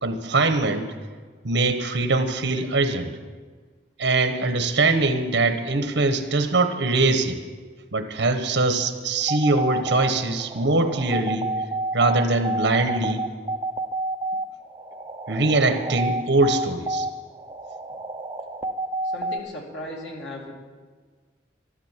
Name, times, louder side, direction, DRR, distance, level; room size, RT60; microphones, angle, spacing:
voice 1, 0.0-0.9 1.4-3.1 4.0-7.4 7.9-11.5 11.9-13.2 15.3-17.1, right 3 dB, 70° right, 7 dB, 1.2 m, -22 dB
sound 1, 9.2-19.4, right 2 dB, 20° right, 0.8 m, -29 dB
voice 2, 19.1-20.5, left 1 dB, 80° left, -1 dB, 2.9 m, -36 dB
13.0 x 12.0 x 7.4 m, 1.5 s
head